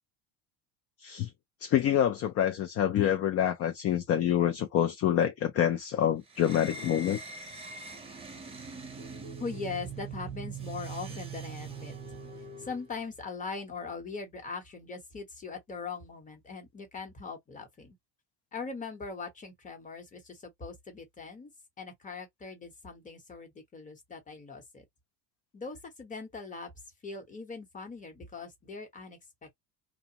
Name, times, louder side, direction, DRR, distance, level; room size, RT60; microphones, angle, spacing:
voice 1, 1.6-7.2, left 10 dB, 40° left, 0.4 m, -27 dB
sound 1, 6.3-12.9, right 5 dB, 15° right, 0.7 m, -42 dB
voice 2, 9.4-12.0 12.6-18.0 18.5-21.5 21.8-24.8 25.5-26.7 27.0-29.5, left 4 dB, 20° left, 1.0 m, -41 dB
2.4 x 2.2 x 2.8 m
cardioid pair, 130°, 40 cm